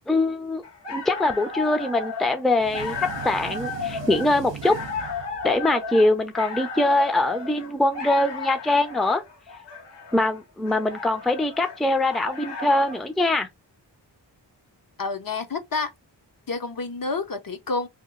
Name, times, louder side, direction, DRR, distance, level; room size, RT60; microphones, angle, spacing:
voice 1, 0.1-0.6 0.9-4.8 5.4-9.2 10.1-13.5, left 2 dB, ahead, 0.5 m, -23 dB
sound 1, 0.6-13.1, left 5 dB, 70° left, 1.5 m, -34 dB
sound 2, 2.6-5.7, right 8 dB, 85° right, 0.6 m, -39 dB
voice 2, 15.0-15.9 16.5-17.9, left 3 dB, 50° left, 0.8 m, -29 dB
2.9 x 2.4 x 3.7 m
wide cardioid pair, 70°, 43 cm